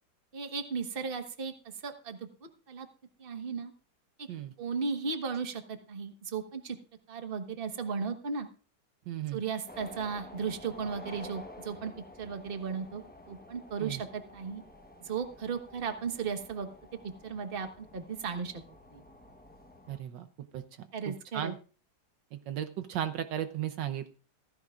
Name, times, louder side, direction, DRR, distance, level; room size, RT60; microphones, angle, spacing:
voice 1, 0.3-1.5 1.8-2.3 2.7-2.9 3.2-3.7 4.2-4.3 4.6-6.8 7.1-8.5 9.3-11.9 12.2-14.6 15.0-16.7 17.2-18.5 18.9-19.0 20.9-21.5, right 5 dB, 35° right, 6 dB, 1.3 m, -35 dB
voice 2, 9.1-9.4 13.8-14.0 19.9-20.3 20.5-21.6 22.3-24.1, right 11 dB, 75° right, 10 dB, 1.4 m, -36 dB
sound 1, 9.7-20.0, left 1 dB, 5° left, 0.7 m, -50 dB
15.5 x 15.0 x 2.5 m, 0.35 s
omnidirectional pair, 2.0 m